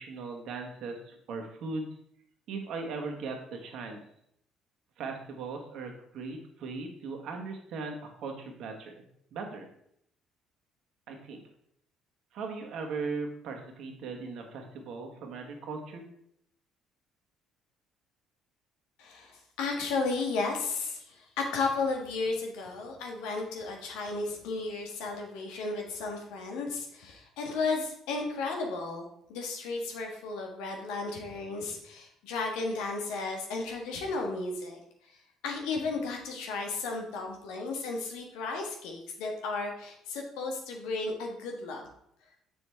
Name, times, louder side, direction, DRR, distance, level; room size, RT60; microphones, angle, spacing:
voice 1, 0.0-1.9 2.5-4.0 5.0-9.0 9.3-9.7 11.1-11.4 12.3-16.1, right 4 dB, 65° right, 3 dB, 1.5 m, -38 dB
voice 2, 19.0-29.0 29.3-34.8 35.4-41.8, left 3 dB, 75° left, 2 dB, 1.6 m, -34 dB
7.0 x 6.6 x 3.4 m, 0.72 s
hypercardioid pair, 55°, 0 cm